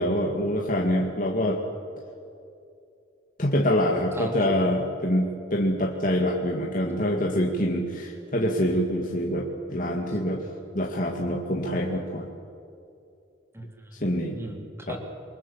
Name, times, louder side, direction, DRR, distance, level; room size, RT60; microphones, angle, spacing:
voice 1, 0.0-1.6 3.4-10.5 10.7-12.3 14.0-14.4 14.9-15.0, equal, 40° left, 0 dB, 2.1 m, -25 dB
voice 2, 4.1-4.7 10.1-10.2 13.5-13.9 14.3-15.0, right 1 dB, 15° right, 2 dB, 3.2 m, -38 dB
27.5 x 23.5 x 7.4 m, 2.6 s
head